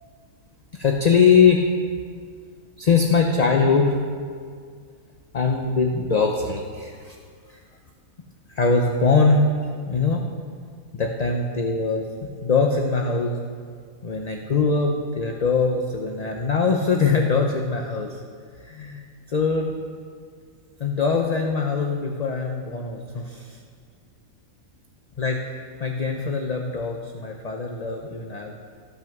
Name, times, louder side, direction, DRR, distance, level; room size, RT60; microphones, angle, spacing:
voice 1, 0.7-1.7 2.8-4.0 5.3-7.2 7.5-7.6 8.5-9.4 9.8-10.2 10.9-12.0 12.4-13.4 14.0-18.2 18.6-19.8 20.8-23.6 25.2-28.5, left 5 dB, 40° left, 2 dB, 0.6 m, -22 dB
15.0 x 6.1 x 5.9 m, 2.1 s
omnidirectional pair, 1.5 m